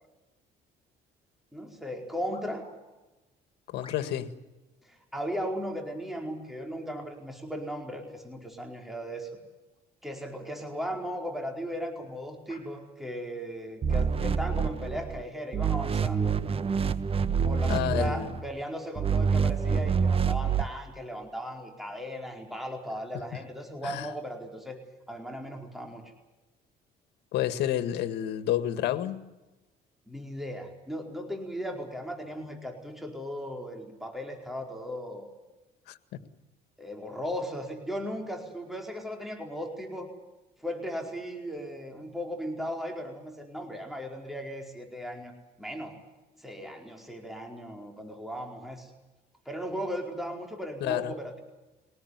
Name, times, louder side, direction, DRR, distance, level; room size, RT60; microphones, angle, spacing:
sound 1, 1.3-1.4 2.3-2.8 3.8-4.3 5.1-5.4 6.4-6.8 7.6-7.7 9.6-9.9 10.5-10.6 11.5-11.6 12.5-12.7 13.6-13.7, left 4 dB, 30° left, 7.1 m, -54 dB
voice 1, 1.5-2.6 4.8-9.3 10.0-16.4 17.4-24.8 25.1-26.1 30.1-35.3 36.8-40.1 40.6-45.3 45.6-46.0 46.4-48.9 49.5-51.4, equal, ahead, 2 dB, 4.6 m, -37 dB
voice 2, 3.7-4.3 17.7-18.3 23.8-24.1 27.3-29.2 35.9-36.2 50.8-51.1, left 12 dB, 80° left, 11 dB, 2.0 m, -30 dB
sound 2, 13.8-15.2 15.5-18.4 19.0-20.7, right 6 dB, 35° right, 1.3 m, -27 dB
23.0 x 19.0 x 9.7 m, 1.1 s
cardioid pair, 110°, 17 cm